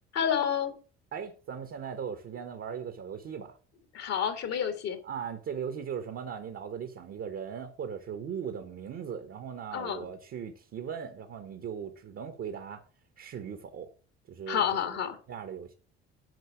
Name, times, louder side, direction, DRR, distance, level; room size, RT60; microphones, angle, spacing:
voice 1, 0.2-0.7 3.9-5.0 9.7-10.0 14.5-15.2, left 8 dB, 55° left, 1.9 m, -29 dB
voice 2, 1.1-3.6 5.0-12.8 13.2-13.9 14.3-15.0 15.3-15.7, right 7 dB, 45° right, 1.3 m, -38 dB
9.4 x 5.2 x 6.2 m
figure-of-eight pair, 55°, 31 cm